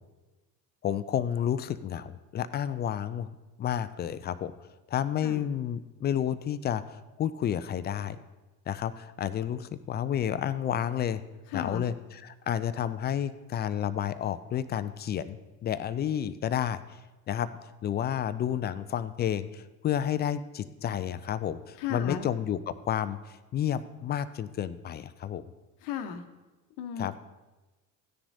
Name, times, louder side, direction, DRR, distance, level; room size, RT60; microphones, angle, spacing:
voice 1, 0.8-3.3 3.6-4.5 4.9-8.2 8.7-11.2 11.5-16.8 17.3-17.5 17.8-25.4 27.0-27.1, left 9 dB, 20° left, 14 dB, 0.4 m, -31 dB
voice 2, 11.5-11.9 21.8-22.3 25.8-26.2 26.8-27.2, left 8 dB, 55° left, 7 dB, 1.0 m, -35 dB
16.0 x 9.9 x 2.7 m, 1.1 s
figure-of-eight pair, 65°, 49 cm